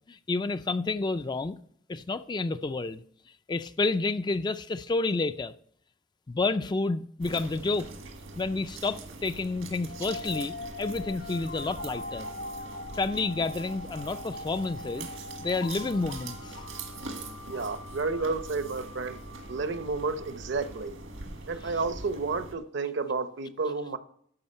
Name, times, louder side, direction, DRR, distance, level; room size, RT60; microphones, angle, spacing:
voice 1, 0.1-1.6 1.9-3.0 3.5-5.5 6.3-7.9 8.4-12.3 12.9-15.1 15.4-16.6, left 3 dB, 20° left, 0.3 m, -30 dB
sound 1, 7.2-22.6, right 3 dB, 80° right, 1.7 m, -43 dB
sound 2, 9.9-20.8, left 2 dB, 70° left, 1.5 m, -42 dB
voice 2, 17.5-19.2 19.5-21.0 21.5-24.0, right 4 dB, 60° right, 0.8 m, -31 dB
12.5 x 5.1 x 5.4 m
head